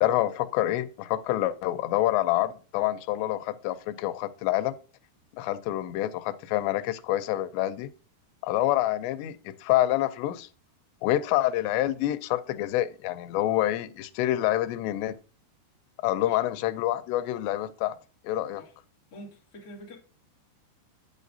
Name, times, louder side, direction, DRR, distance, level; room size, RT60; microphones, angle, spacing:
voice 1, 0.0-4.8 5.3-7.9 8.4-10.5 11.0-15.2 16.0-18.0 18.2-18.6, left 14 dB, 85° left, 2.8 m, -27 dB
voice 2, 19.1-20.0, left 1 dB, 30° left, 1.8 m, -45 dB
9.0 x 8.2 x 2.7 m
omnidirectional pair, 4.9 m